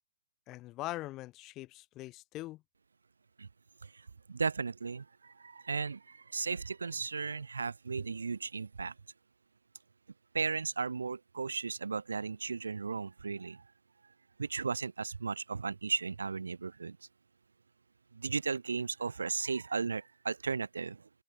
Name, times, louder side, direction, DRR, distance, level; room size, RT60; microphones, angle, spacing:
voice 1, 0.5-2.6, left 17 dB, 25° left, 0.9 m, -42 dB
voice 2, 3.8-8.9 10.3-13.6 14.4-17.0 18.1-21.1, right 5 dB, 75° right, 0.4 m, -35 dB
figure-of-eight pair, 130°, 0 cm